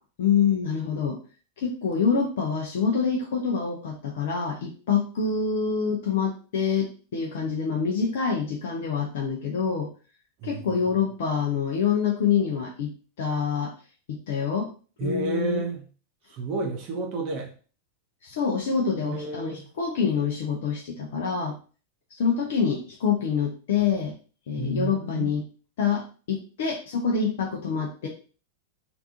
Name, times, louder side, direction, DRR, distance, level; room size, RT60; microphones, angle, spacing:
voice 1, 0.2-1.2 1.6-9.9 10.4-13.7 14.1-14.7 15.0-15.6 18.2-21.6 22.1-24.2 24.5-25.5 25.8-28.1, left 6 dB, 55° left, -1 dB, 0.6 m, -26 dB
voice 2, 10.4-10.8 15.0-15.8 16.3-17.5 19.0-19.7 24.6-25.3, right 3 dB, 40° right, 2 dB, 0.7 m, -31 dB
3.3 x 2.6 x 2.7 m, 0.38 s
figure-of-eight pair, 90°, 0 cm